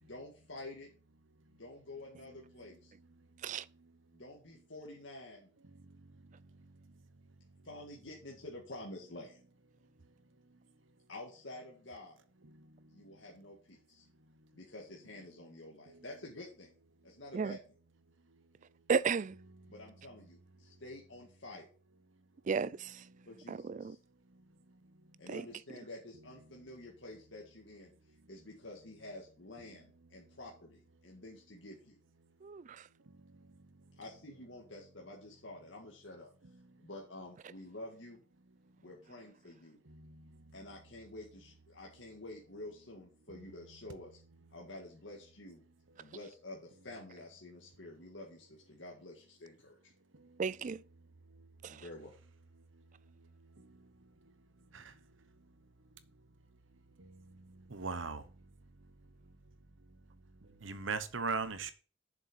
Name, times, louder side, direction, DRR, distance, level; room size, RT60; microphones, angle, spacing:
voice 1, 0.0-0.9 1.5-2.9 4.1-5.5 7.6-9.4 11.1-12.2 12.9-14.1 14.5-16.7 17.0-17.7 19.7-21.7 23.3-24.0 25.2-27.9 28.3-32.0 34.0-36.3 36.8-38.2 38.8-39.8 40.5-44.2 44.5-45.6 46.0-49.9 51.7-52.1, left 2 dB, 65° left, 1.9 m, -49 dB
voice 2, 18.9-19.3 22.5-23.0 23.5-24.0 25.3-25.4 32.4-32.8 50.4-50.8 51.6-51.8, right 5 dB, 40° right, 0.4 m, -34 dB
voice 3, 57.7-58.2 60.6-61.7, right 4 dB, 75° right, 1.0 m, -36 dB
7.2 x 6.8 x 6.0 m
head